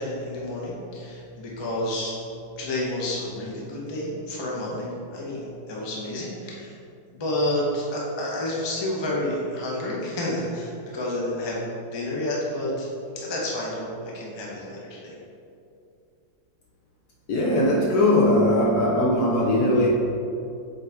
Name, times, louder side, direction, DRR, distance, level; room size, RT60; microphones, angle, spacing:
voice 1, 0.0-2.2 2.6-6.7 7.1-12.9 13.1-15.1, left 1 dB, 25° left, -4 dB, 0.6 m, -30 dB
voice 2, 17.3-19.9, left 1 dB, 65° left, -2 dB, 1.0 m, -20 dB
7.4 x 4.1 x 3.5 m, 2.6 s
omnidirectional pair, 2.1 m